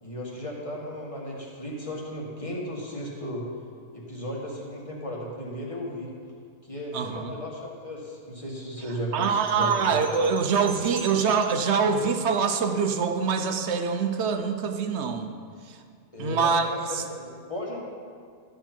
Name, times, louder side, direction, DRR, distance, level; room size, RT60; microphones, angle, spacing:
voice 1, 0.0-3.5 3.9-6.1 6.7-10.0 16.1-16.8 17.1-17.8, equal, 20° left, -4 dB, 1.9 m, -35 dB
voice 2, 6.9-7.3 9.1-15.3 15.7-15.8 16.2-16.7 16.9-17.0, right 5 dB, 55° right, 6 dB, 0.9 m, -24 dB
sound 1, 9.2-11.7, right 3 dB, 20° right, 1.0 m, -44 dB
13.0 x 7.8 x 4.5 m, 2.1 s
omnidirectional pair, 1.6 m